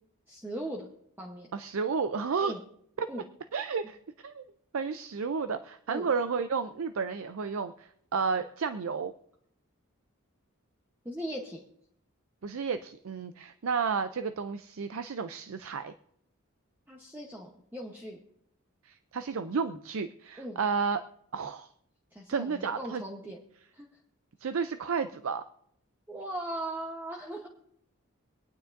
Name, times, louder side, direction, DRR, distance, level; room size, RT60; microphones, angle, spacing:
voice 1, 0.3-0.9 1.2-1.5 2.4-2.6 3.1-3.2 5.9-6.1 11.0-11.6 16.9-18.2 20.4-20.6 22.1-23.4 23.7-23.9 26.1-27.5, right 1 dB, 10° right, -1 dB, 0.9 m, -38 dB
voice 2, 1.5-2.5 3.0-3.1 3.5-4.0 4.2-4.4 4.7-9.1 12.4-15.9 18.8-21.0 21.3-21.7 22.3-23.0 24.4-25.4, right 5 dB, 70° right, 10 dB, 0.5 m, -32 dB
24.5 x 9.2 x 2.6 m, 0.72 s
head